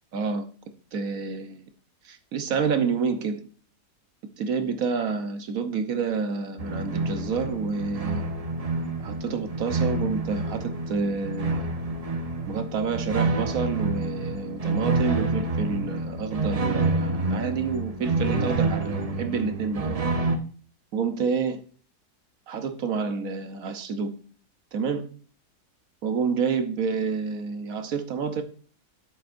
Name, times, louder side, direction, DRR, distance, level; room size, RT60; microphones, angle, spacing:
voice 1, 0.1-0.5 0.9-1.6 2.0-3.4 4.4-8.2 9.0-11.7 12.5-20.0 20.9-21.6 22.5-24.1 24.7-25.1 26.0-28.4, right 5 dB, 60° right, 1.3 m, -28 dB
sound 1, 6.6-20.4, right 3 dB, 35° right, 0.6 m, -28 dB
9.6 x 7.9 x 2.5 m
omnidirectional pair, 1.7 m